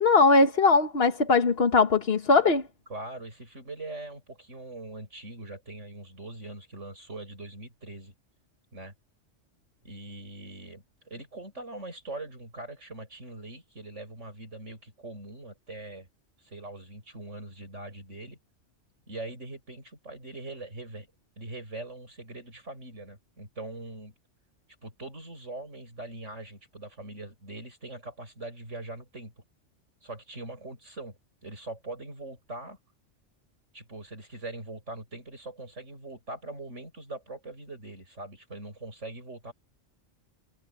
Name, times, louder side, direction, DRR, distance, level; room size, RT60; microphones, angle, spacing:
voice 1, 0.0-2.6, left 3 dB, 55° left, 1.7 m, -20 dB
voice 2, 2.9-8.1 8.7-8.9 9.8-16.1 16.4-18.4 19.1-21.1 21.4-24.1 24.8-29.3 30.0-32.8 33.7-39.5, right 2 dB, 90° right, 8.0 m, -42 dB
omnidirectional pair, 1.2 m